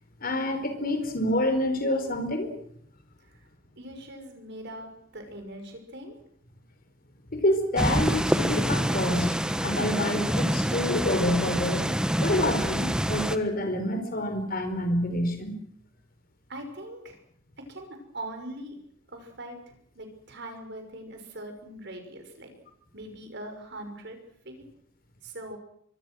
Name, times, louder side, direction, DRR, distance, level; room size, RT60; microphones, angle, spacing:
voice 1, 0.2-2.5 7.3-11.9 12.2-15.5, left 1 dB, 50° left, 7 dB, 4.6 m, -27 dB
voice 2, 3.8-6.1 16.5-17.2 17.7-18.8 19.1-22.5 22.9-24.2 24.4-24.6 25.2-25.6, right 1 dB, 60° right, 5 dB, 6.0 m, -41 dB
sound 1, 7.8-13.4, equal, 5° right, 1.2 m, -26 dB
24.5 x 23.5 x 6.4 m, 0.65 s
head